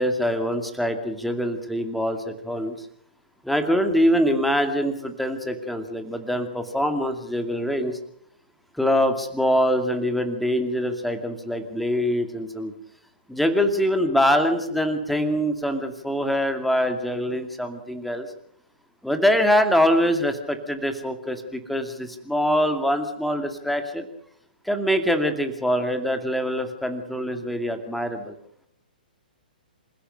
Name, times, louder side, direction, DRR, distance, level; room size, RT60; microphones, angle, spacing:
voice 1, 0.0-2.7 3.4-8.0 8.7-12.7 13.3-18.3 19.0-24.1 24.7-28.3, equal, ahead, 7 dB, 2.4 m, -24 dB
27.0 x 16.0 x 6.7 m, 0.69 s
figure-of-eight pair, 120°, 5 cm